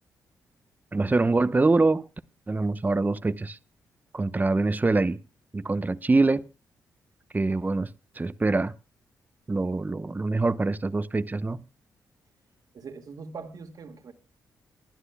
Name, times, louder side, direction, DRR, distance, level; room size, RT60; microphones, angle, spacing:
voice 1, 0.9-2.1 2.5-3.6 4.1-5.2 5.5-6.4 7.3-7.9 8.2-8.7 9.5-11.6, right 3 dB, 25° right, 0.9 m, -24 dB
voice 2, 12.7-14.1, right 4 dB, 60° right, 2.0 m, -41 dB
28.5 x 11.0 x 2.2 m
supercardioid pair, 50°, 7 cm